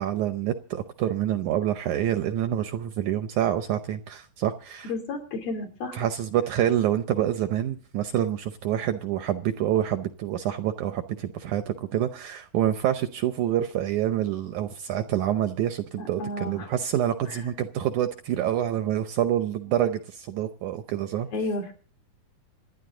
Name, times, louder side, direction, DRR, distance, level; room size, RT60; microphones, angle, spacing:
voice 1, 0.0-4.9 5.9-21.3, right 11 dB, 75° right, 9 dB, 1.9 m, -27 dB
voice 2, 4.8-6.0 16.0-16.7 21.3-21.7, left 2 dB, 75° left, 3 dB, 4.8 m, -32 dB
27.0 x 10.5 x 3.8 m, 0.38 s
omnidirectional pair, 4.2 m